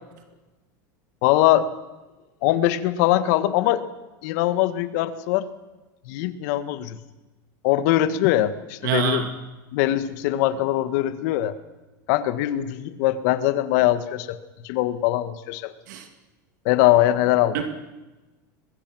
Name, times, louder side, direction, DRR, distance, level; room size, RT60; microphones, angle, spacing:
voice 1, 1.2-1.7 2.4-3.8 4.2-5.4 6.1-7.0 7.6-9.2 9.7-11.5 12.1-14.4 14.6-15.7 16.6-17.6, left 14 dB, 65° left, 12 dB, 1.7 m, -21 dB
voice 2, 8.8-9.3 15.9-16.1 17.5-17.6, right 8 dB, 75° right, 5 dB, 2.4 m, -25 dB
22.5 x 21.5 x 6.3 m, 1.1 s
supercardioid pair, 115°, 10 cm